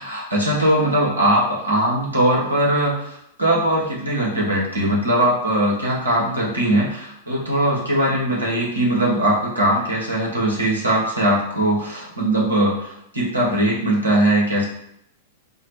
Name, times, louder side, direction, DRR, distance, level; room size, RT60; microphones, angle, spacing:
voice 1, 0.0-14.6, right 1 dB, 85° right, -5 dB, 1.3 m, -20 dB
3.7 x 2.1 x 4.3 m, 0.75 s
figure-of-eight pair, 100°, 0 cm